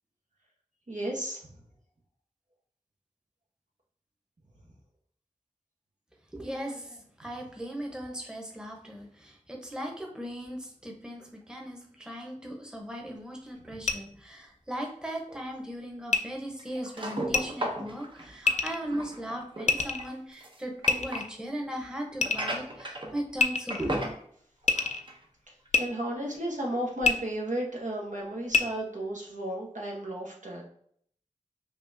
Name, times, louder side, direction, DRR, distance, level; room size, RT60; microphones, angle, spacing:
voice 1, 0.9-1.5 25.8-30.6, right 1 dB, 75° right, -2 dB, 1.1 m, -33 dB
voice 2, 6.3-24.0, equal, 5° right, 0 dB, 0.9 m, -38 dB
sound 1, 13.8-13.9 16.1-16.2 17.3-17.4 18.5-18.8 19.7-20.1 20.9-21.4 22.2-22.5 23.4-23.9 24.6-25.0 25.7-25.8 27.0-27.1 28.5-28.6, left 4 dB, 65° left, 0.4 m, -25 dB
sound 2, 15.3-15.4 16.6-21.3 22.2-23.4 23.7-24.2 24.6-25.2 25.6-25.7 26.3-26.4, right 1 dB, 40° right, 0.7 m, -36 dB
5.2 x 2.4 x 2.7 m, 0.63 s
wide cardioid pair, 40°, 13 cm